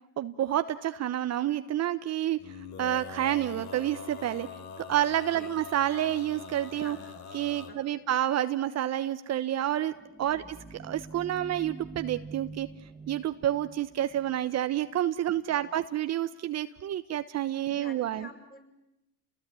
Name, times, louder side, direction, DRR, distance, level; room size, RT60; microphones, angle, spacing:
voice 1, 0.2-4.5 4.8-7.0 7.3-9.9 10.2-10.6 10.8-12.7 13.1-18.3, right 12 dB, 40° right, 10 dB, 1.1 m, -29 dB
Male singing, 2.4-7.7, left 5 dB, 45° left, 3.6 m, -44 dB
voice 2, 6.8-7.2 7.7-8.0 10.3-10.5 15.3-15.8 17.7-18.6, left 3 dB, 25° left, 2 dB, 7.7 m, -51 dB
sound 1, 9.6-15.0, right 3 dB, 15° right, 1.5 m, -46 dB
30.0 x 20.5 x 9.3 m, 0.91 s
supercardioid pair, 100°, 39 cm